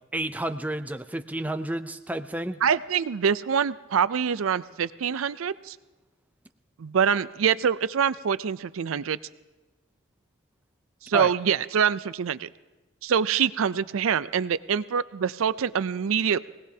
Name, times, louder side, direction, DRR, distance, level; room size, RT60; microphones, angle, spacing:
voice 1, 0.1-2.6 11.1-11.3, right 1 dB, 10° right, 9 dB, 0.5 m, -31 dB
voice 2, 2.6-5.8 6.8-9.2 11.0-12.5 13.0-16.4, right 7 dB, 90° right, 16 dB, 0.4 m, -25 dB
23.5 x 18.0 x 2.8 m, 1.2 s
head